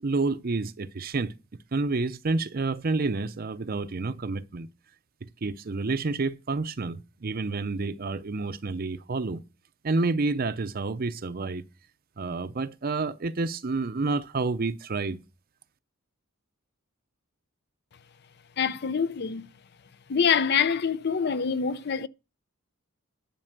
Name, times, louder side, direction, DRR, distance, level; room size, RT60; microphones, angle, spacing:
voice 1, 0.0-1.3 1.7-4.7 5.2-9.4 9.8-11.6 12.2-15.2, right 3 dB, 45° right, 0.6 m, -29 dB
voice 2, 18.6-19.5 20.1-22.1, left 6 dB, 50° left, 0.5 m, -25 dB
11.0 x 5.3 x 6.5 m
head